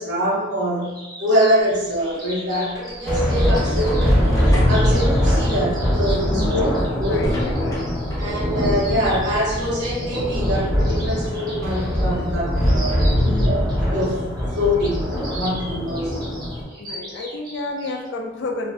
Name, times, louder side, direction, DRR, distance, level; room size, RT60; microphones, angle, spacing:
voice 1, 0.0-6.7 7.0-7.2 8.2-13.0 13.4-13.6 13.9-14.3 14.5-16.3, equal, 65° right, -6 dB, 0.8 m, -24 dB
sound 1, 0.8-18.1, right 1 dB, 20° right, 0.7 m, -39 dB
sound 2, 1.8-8.3, equal, 20° left, 0.7 m, -33 dB
sound 3, 3.0-16.6, equal, ahead, 1.0 m, -22 dB
voice 2, 6.3-6.7 7.1-7.9 13.2-13.7 16.8-18.7, left 2 dB, 70° left, 3 dB, 0.4 m, -31 dB
2.5 x 2.1 x 3.3 m, 1.1 s
head